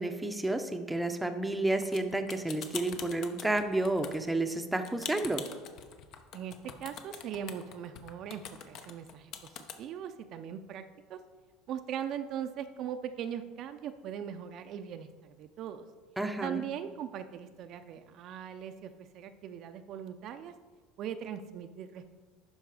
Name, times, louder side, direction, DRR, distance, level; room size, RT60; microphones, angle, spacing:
voice 1, 0.0-5.4 16.2-16.6, right 2 dB, 5° right, 6 dB, 0.6 m, -31 dB
sound 1, 1.8-9.8, left 8 dB, 55° left, 0.8 m, -43 dB
voice 2, 6.8-11.2 11.7-15.9 16.4-20.5 21.0-22.2, right 9 dB, 50° right, 8 dB, 0.5 m, -40 dB
11.5 x 4.7 x 4.8 m, 1.4 s
supercardioid pair, 125°, 0 cm